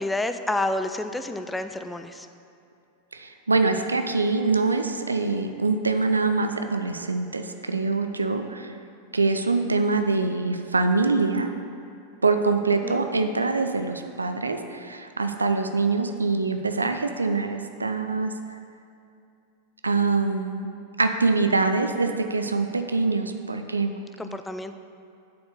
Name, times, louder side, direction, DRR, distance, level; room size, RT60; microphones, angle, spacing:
voice 1, 0.0-2.3 12.8-13.0 24.2-24.7, left 2 dB, 5° left, 9 dB, 0.3 m, -29 dB
voice 2, 3.1-8.7 9.1-11.5 12.2-18.3 19.8-20.7 21.0-23.9, right 3 dB, 80° right, 6 dB, 0.4 m, -24 dB
8.3 x 4.4 x 6.6 m, 2.5 s
figure-of-eight pair, 90°, 0 cm